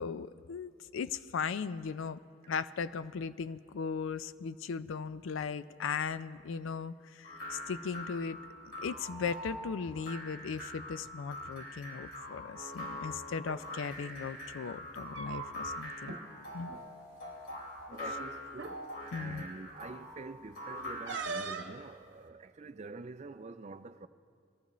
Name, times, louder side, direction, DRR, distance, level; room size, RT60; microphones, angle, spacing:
voice 1, 0.0-2.2 2.5-8.4 8.8-16.2 16.5-16.7 19.1-19.4, left 5 dB, 80° left, 0.4 m, -37 dB
sound 1, 7.2-21.5, left 1 dB, 50° left, 3.6 m, -44 dB
sound 2, 13.3-13.6 14.9-15.8 16.0-16.2 16.6-16.8 17.8-17.9 18.5-18.8 21.1-21.8, right 4 dB, 65° right, 1.0 m, -40 dB
voice 2, 17.9-18.8 19.1-24.1, right 3 dB, 35° right, 0.4 m, -46 dB
23.0 x 14.5 x 3.1 m
head